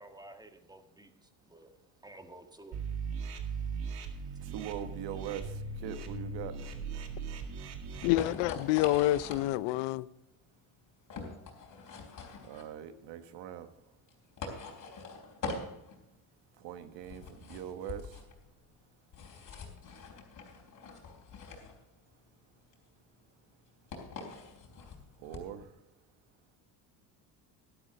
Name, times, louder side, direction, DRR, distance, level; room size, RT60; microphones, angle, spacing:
voice 1, 0.0-1.7 2.0-2.8 3.1-4.2 4.7-4.9 5.5-5.6, right 1 dB, 10° right, 1.6 m, -54 dB
sound 1, 2.7-8.1, right 5 dB, 60° right, 2.1 m, -39 dB
voice 2, 4.4-6.7 12.5-13.7 16.6-18.2 25.2-25.7, right 9 dB, 75° right, 1.3 m, -42 dB
sound 2, 7.3-25.7, left 4 dB, 45° left, 3.8 m, -44 dB
voice 3, 8.0-10.1, left 16 dB, 85° left, 0.6 m, -28 dB
12.0 x 12.0 x 3.9 m
cardioid pair, 100°, 43 cm